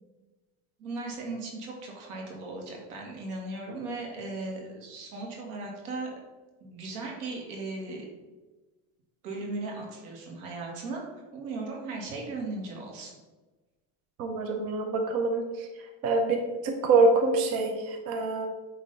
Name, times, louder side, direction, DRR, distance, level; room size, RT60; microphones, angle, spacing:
voice 1, 0.8-6.1 6.6-8.1 9.2-11.0 11.3-13.1, right 3 dB, 80° right, -1 dB, 2.0 m, -37 dB
voice 2, 14.2-15.7 16.0-18.5, right 3 dB, 35° right, 4 dB, 0.6 m, -25 dB
8.4 x 3.2 x 4.0 m, 1.2 s
cardioid pair, 160°, 45 cm